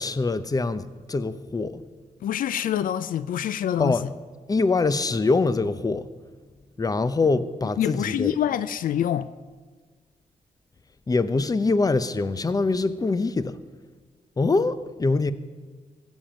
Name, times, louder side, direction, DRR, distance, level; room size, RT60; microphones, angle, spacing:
voice 1, 0.0-1.8 3.8-4.0 4.5-6.1 6.8-8.3 11.1-13.5 14.4-15.3, left 3 dB, 25° left, 0.7 m, -24 dB
voice 2, 2.2-4.1 7.8-9.3, left 10 dB, 80° left, 0.4 m, -26 dB
15.5 x 7.3 x 7.4 m
cardioid pair, 75°, 14 cm